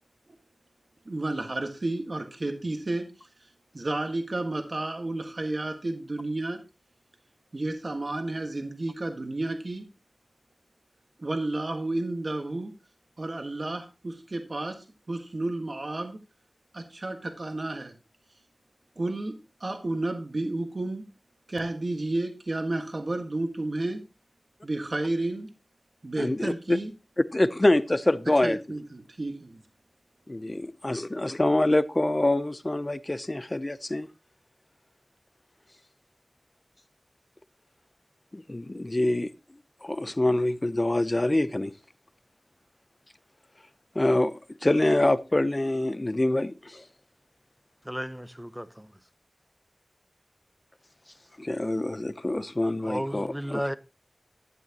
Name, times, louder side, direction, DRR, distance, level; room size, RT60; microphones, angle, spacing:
voice 1, 1.0-3.1 3.7-6.6 7.5-9.8 11.2-12.7 13.2-16.2 16.7-17.9 19.0-19.3 19.6-21.0 21.5-24.0 24.6-25.5 26.0-26.9 28.4-29.6, right 2 dB, 60° right, 1.5 m, -31 dB
voice 2, 26.2-26.8 27.3-28.6 30.3-34.1 38.3-39.3 39.8-41.7 43.9-46.8 51.4-53.6, left 1 dB, 30° left, 0.7 m, -25 dB
voice 3, 47.8-48.9 52.8-53.7, equal, 5° right, 0.8 m, -33 dB
12.0 x 9.3 x 2.9 m
wide cardioid pair, 55°, 0 cm